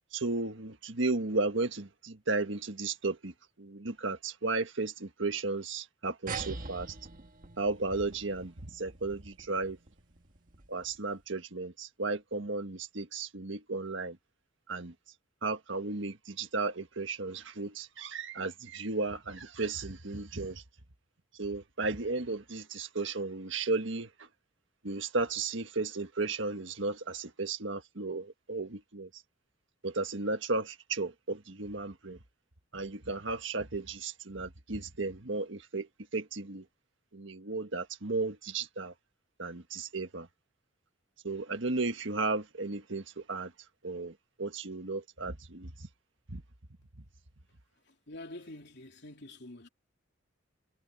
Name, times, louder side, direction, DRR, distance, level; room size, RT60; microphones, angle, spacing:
voice 1, 0.1-7.0 7.6-9.8 10.7-14.2 14.7-14.9 15.4-20.6 21.4-24.3 24.8-29.1 29.8-32.2 32.7-35.9 36.1-36.7 37.1-38.9 39.4-40.3 41.2-43.5 43.8-45.9 46.3-46.4, right 3 dB, 65° right, 1.6 m, -34 dB
sound 1, 6.3-11.1, right 4 dB, 45° right, 1.6 m, -45 dB
voice 2, 47.7-49.7, left 1 dB, 60° left, 3.1 m, -47 dB
head